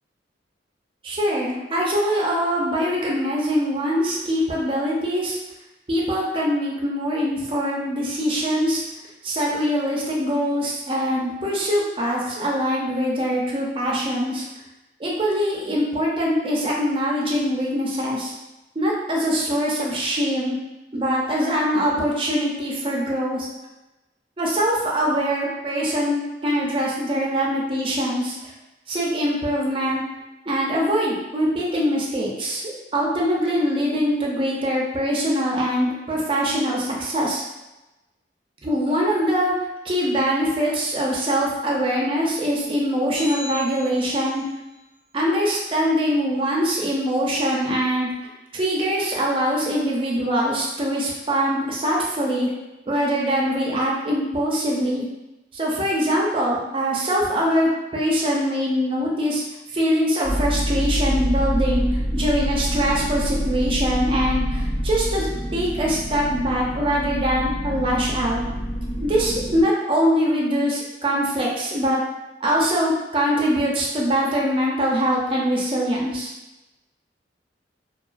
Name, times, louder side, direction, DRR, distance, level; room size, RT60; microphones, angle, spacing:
voice 1, 1.0-5.4 5.9-8.8 9.2-14.5 15.0-18.3 18.8-20.6 20.9-23.5 24.4-28.4 28.9-30.0 30.5-32.6 32.9-37.4 38.6-39.5 39.8-44.4 45.1-48.1 48.5-52.5 52.9-55.1 55.5-59.4 59.7-61.8 62.1-68.4 69.0-72.0 72.4-76.3, equal, 30° right, -4 dB, 0.5 m, -23 dB
sound 1, 43.2-44.5, left 1 dB, ahead, 0.9 m, -37 dB
sound 2, 60.2-69.6, equal, 80° left, 1.3 m, -26 dB
2.3 x 2.3 x 2.4 m, 1.0 s
head